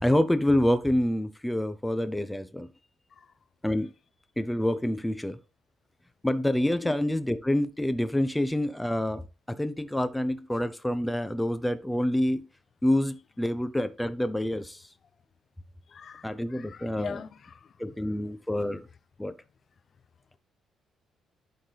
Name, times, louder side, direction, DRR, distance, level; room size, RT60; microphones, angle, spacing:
voice 1, 0.0-2.7 3.6-3.9 4.4-5.4 6.2-9.2 9.5-12.5 12.8-14.8 16.2-17.2 17.8-18.8 19.2-19.3, left 1 dB, 5° left, 0.9 m, -27 dB
voice 2, 15.9-17.7, left 7 dB, 50° left, 0.7 m, -43 dB
11.5 x 4.3 x 3.5 m
cardioid pair, 90°, 0 cm